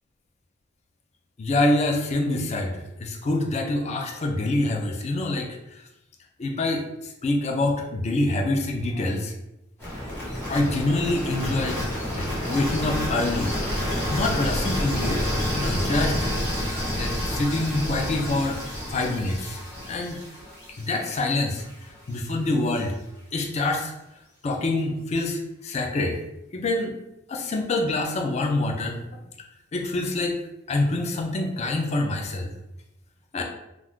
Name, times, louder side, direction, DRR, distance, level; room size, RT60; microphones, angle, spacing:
voice 1, 1.4-5.8 6.4-9.3 10.5-11.8 12.2-13.6 14.1-16.2 17.0-18.6 18.9-19.6 19.9-20.2 20.8-21.7 22.1-23.0 23.3-23.9 24.4-26.2 26.5-27.0 27.3-29.0 29.7-30.4 30.7-32.5 33.3-33.4, left 2 dB, 35° left, 1 dB, 0.4 m, -26 dB
sound 1, 9.8-21.7, equal, 10° left, 1.1 m, -29 dB
2.4 x 2.3 x 3.5 m, 0.91 s
head